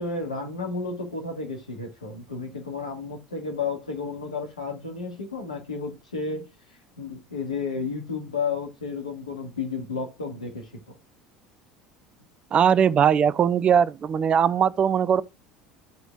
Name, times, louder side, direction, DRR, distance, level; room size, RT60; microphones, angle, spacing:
voice 1, 0.0-6.5 7.0-10.9, left 4 dB, 80° left, 1.7 m, -32 dB
voice 2, 12.5-15.2, right 8 dB, 35° right, 0.4 m, -20 dB
14.0 x 5.0 x 2.4 m
figure-of-eight pair, 65°, 3 cm